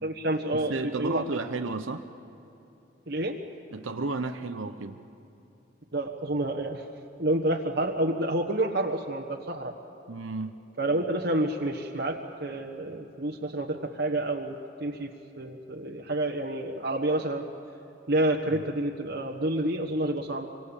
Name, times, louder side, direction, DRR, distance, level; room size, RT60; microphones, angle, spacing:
voice 1, 0.0-1.2 3.1-3.4 5.9-6.8 7.2-9.7 10.8-15.1 15.4-17.4 18.1-20.5, right 1 dB, 60° right, 2 dB, 1.4 m, -29 dB
voice 2, 0.5-2.1 3.7-5.0 10.1-10.6 18.5-18.6, right 3 dB, 85° right, 6 dB, 0.9 m, -33 dB
27.0 x 25.0 x 7.3 m, 2.9 s
head